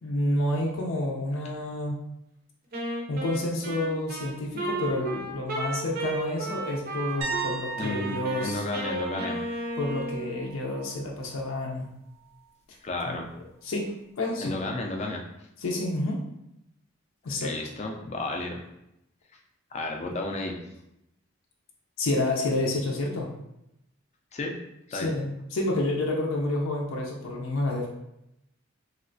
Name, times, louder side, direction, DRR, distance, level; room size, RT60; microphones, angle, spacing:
voice 1, 0.0-2.0 3.1-8.6 9.8-11.9 13.0-13.2 13.6-13.9 14.2-14.5 15.6-16.2 17.2-17.5 22.0-23.3 24.9-27.9, left 1 dB, 85° left, -1 dB, 0.5 m, -29 dB
Wind instrument woodwind instrument, 2.7-7.5 7.8-10.4, right 1 dB, 45° right, 0.6 m, -34 dB
sound 1, 7.2-11.0 11.3-11.6 14.5-14.6, right 6 dB, 90° right, 0.6 m, -37 dB
voice 2, 7.8-9.4 12.8-13.3 14.4-15.2 17.4-18.6 19.7-20.6 24.3-24.5 24.9-25.1, left 2 dB, 35° left, 2 dB, 0.4 m, -32 dB
3.1 x 2.8 x 2.6 m, 0.84 s
head